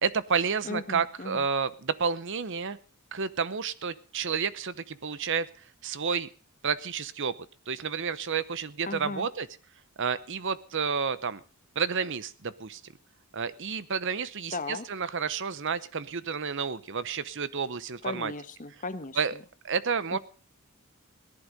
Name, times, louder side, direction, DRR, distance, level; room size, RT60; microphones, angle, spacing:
voice 1, 0.0-2.8 3.1-5.5 5.8-6.3 6.6-7.3 7.7-9.5 10.0-11.4 11.8-12.8 13.3-18.3 19.2-19.4 19.6-20.2, right 6 dB, 55° right, 16 dB, 0.8 m, -30 dB
voice 2, 0.6-1.4 8.8-9.3 14.5-14.8 18.0-19.2 20.1-20.2, left 3 dB, 35° left, 11 dB, 1.1 m, -36 dB
17.5 x 11.0 x 5.3 m, 0.37 s
head